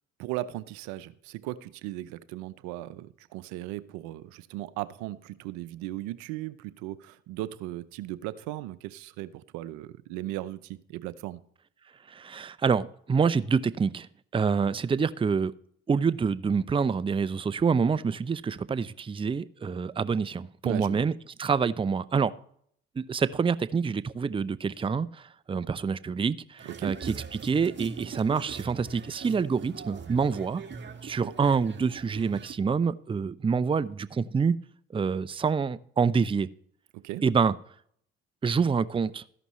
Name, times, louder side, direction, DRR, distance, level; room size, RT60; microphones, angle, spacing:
voice 1, 0.2-11.4 20.6-21.0 26.6-26.9 37.0-37.2, right 15 dB, 80° right, 16 dB, 0.6 m, -37 dB
voice 2, 12.1-14.1 14.3-15.5 15.9-21.1 21.4-22.3 23.0-30.6 31.0-34.6 34.9-36.5 37.2-37.5 38.4-39.2, right 5 dB, 20° right, 17 dB, 0.5 m, -27 dB
sound 1, 26.6-32.5, right 6 dB, 40° right, 1.8 m, -41 dB
13.5 x 11.0 x 3.1 m, 0.64 s
hypercardioid pair, 60°, 29 cm